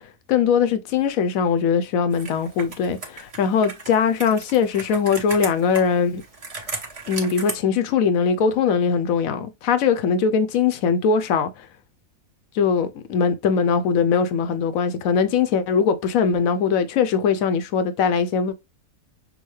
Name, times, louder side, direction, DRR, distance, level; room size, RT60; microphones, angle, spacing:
voice 1, 0.3-6.2 7.1-11.7 12.5-18.5, left 6 dB, 75° left, 1.1 m, -21 dB
Computer keyboard, 2.1-7.5, right 3 dB, 30° right, 0.9 m, -36 dB
6.1 x 2.2 x 3.2 m
omnidirectional pair, 1.5 m